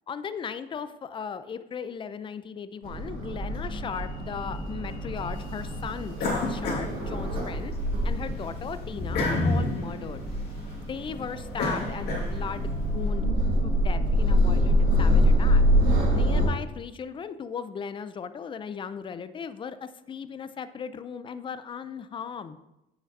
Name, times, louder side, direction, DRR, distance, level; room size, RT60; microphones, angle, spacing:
voice 1, 0.1-7.7 8.0-10.2 10.9-13.3 13.6-15.6 16.1-22.6, left 6 dB, 30° left, 12 dB, 0.4 m, -37 dB
sound 1, 2.8-16.5, equal, 55° right, 2.2 m, -26 dB
sound 2, 6.2-7.7 8.1-12.7, left 2 dB, 75° left, 1.9 m, -30 dB
9.2 x 5.0 x 2.6 m, 0.90 s
cardioid pair, 110°, 17 cm